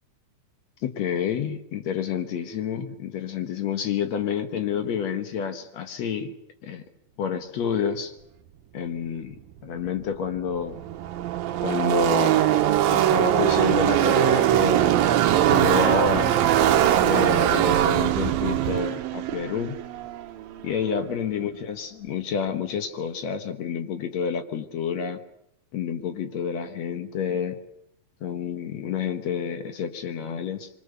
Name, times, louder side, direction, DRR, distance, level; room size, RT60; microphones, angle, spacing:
voice 1, 0.8-6.3 6.6-6.8 7.2-8.2 8.7-10.8 11.6-12.6 12.9-14.9 15.5-16.3 17.0-19.8 20.6-25.2 25.7-27.6 28.2-30.7, left 7 dB, 60° left, 7 dB, 2.2 m, -29 dB
Car passing by / Race car auto racing, 10.0-10.1 10.3-20.8, right 11 dB, 75° right, 2.8 m, -21 dB
25.0 x 24.0 x 6.8 m, 0.80 s
omnidirectional pair, 4.3 m